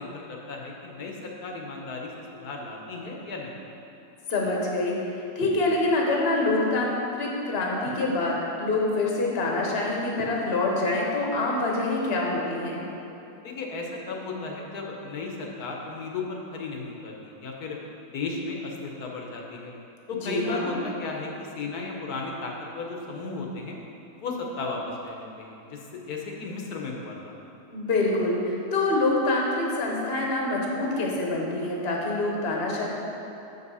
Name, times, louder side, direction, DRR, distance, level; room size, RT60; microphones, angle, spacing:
voice 1, 0.0-3.6 13.4-17.8 18.1-19.7 20.1-23.8 24.2-27.3, left 3 dB, 70° left, 0 dB, 1.4 m, -35 dB
voice 2, 4.3-12.9 20.2-20.7 27.7-32.8, left 2 dB, 45° left, -2 dB, 1.2 m, -26 dB
7.0 x 5.4 x 5.5 m, 3.0 s
omnidirectional pair, 1.7 m